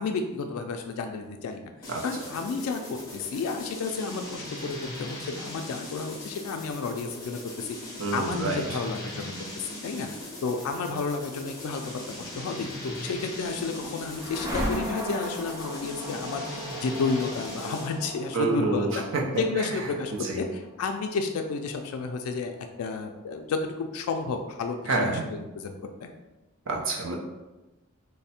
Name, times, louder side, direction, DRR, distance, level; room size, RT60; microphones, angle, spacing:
voice 1, 0.0-1.7 2.0-2.8 3.1-7.8 8.1-19.0 19.4-26.1, left 4 dB, 80° left, 4 dB, 0.3 m, -32 dB
sound 1, 1.8-18.0, left 1 dB, 15° left, 0.8 m, -40 dB
voice 2, 8.0-8.6 18.3-19.2 20.2-20.4 24.9-25.2 26.7-27.2, right 3 dB, 55° right, -1 dB, 0.6 m, -27 dB
sound 2, 13.2-23.0, equal, 15° right, 0.5 m, -38 dB
3.3 x 2.1 x 4.1 m, 1.1 s
head